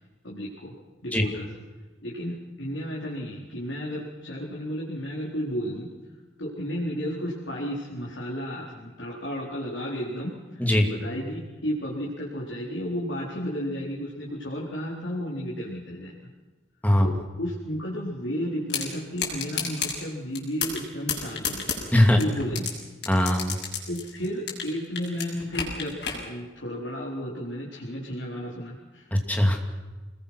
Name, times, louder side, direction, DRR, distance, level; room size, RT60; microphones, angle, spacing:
voice 1, 0.2-0.7 1.0-1.5 2.0-5.9 6.4-16.2 17.0-21.7 22.2-22.7 23.9-29.2, equal, 80° left, -4 dB, 4.3 m, -33 dB
sound 1, 18.7-18.9 19.2-19.9 20.3-20.8 21.1-22.7 23.0-24.7 25.0-26.2, left 7 dB, 60° left, 6.9 m, -29 dB
voice 2, 23.1-23.6 29.1-29.6, left 1 dB, 10° left, 3 dB, 2.5 m, -20 dB
26.0 x 21.0 x 6.3 m, 1.3 s
head